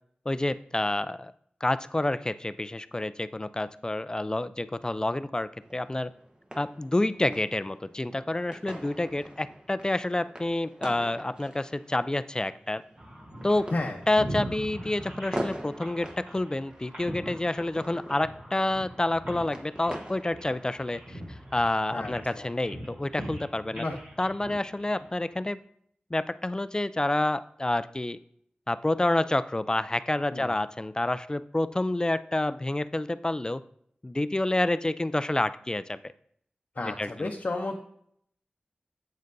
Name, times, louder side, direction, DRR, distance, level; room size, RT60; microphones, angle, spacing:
voice 1, 0.3-1.3 1.6-6.1 6.6-12.8 13.4-13.7 14.1-23.8 24.2-25.6 26.1-28.2 28.7-33.6 34.0-36.0 36.8-37.3, left 1 dB, 25° left, 15 dB, 0.3 m, -28 dB
sound 1, 5.6-21.6, right 1 dB, 30° right, 1.0 m, -43 dB
sound 2, 13.0-25.3, right 1 dB, 60° right, 3.4 m, -42 dB
voice 2, 21.9-22.5 23.8-24.0 30.3-30.5 36.7-37.8, left 2 dB, 55° left, 1 dB, 0.7 m, -32 dB
8.0 x 7.5 x 2.6 m, 0.66 s
wide cardioid pair, 60°, 3 cm